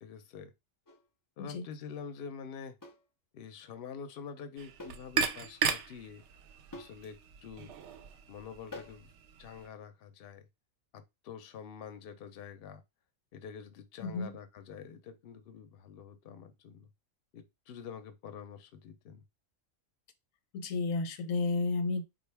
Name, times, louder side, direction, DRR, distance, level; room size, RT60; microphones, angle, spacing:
voice 1, 0.0-0.5 1.4-2.8 3.3-6.2 6.7-7.7 8.3-9.1 9.4-10.5 10.9-12.8 13.3-16.9 17.3-19.2, left 6 dB, 60° left, 0.7 m, -46 dB
sound 1, 0.9-1.1 2.8-3.1 4.8-5.1 5.4-5.5 6.7-7.0 8.7-9.1, left 2 dB, 30° left, 0.3 m, -47 dB
sound 2, 4.6-9.7, right 6 dB, 65° right, 0.8 m, -37 dB
voice 2, 14.0-14.3 20.5-22.0, left 3 dB, 85° left, 1.0 m, -32 dB
3.7 x 2.3 x 3.3 m
omnidirectional pair, 1.4 m